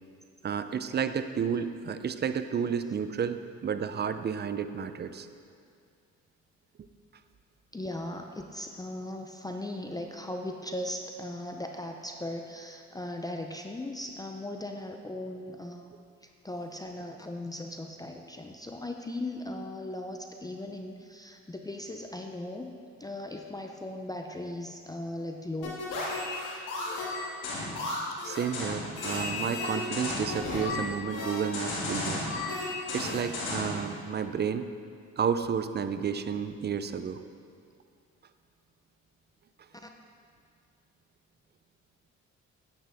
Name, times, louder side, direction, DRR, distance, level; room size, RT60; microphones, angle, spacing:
voice 1, 0.4-5.3 28.2-32.3 32.9-34.7 35.2-37.2, right 7 dB, 35° right, 10 dB, 0.5 m, -31 dB
voice 2, 7.7-15.9 16.4-25.8 39.7-39.9, left 1 dB, 10° left, 3 dB, 0.5 m, -38 dB
sound 1, 25.6-33.8, left 2 dB, 90° left, 2.3 m, -33 dB
9.6 x 8.9 x 3.5 m, 2.3 s
cardioid pair, 90°, 30 cm